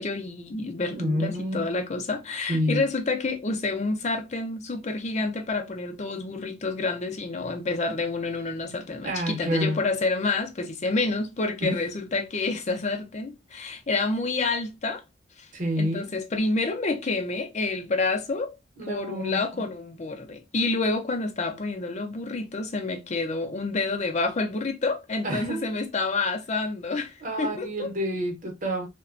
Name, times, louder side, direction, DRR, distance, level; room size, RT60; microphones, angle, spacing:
voice 1, 0.0-15.0 15.4-15.5 15.8-18.6 18.9-27.9, left 3 dB, 40° left, 0.5 m, -28 dB
voice 2, 0.9-1.8 2.5-2.8 9.0-9.8 11.6-11.8 15.5-16.1 18.8-19.6 25.2-25.7 27.2-28.9, equal, 45° right, 0.9 m, -28 dB
2.9 x 2.2 x 2.4 m
head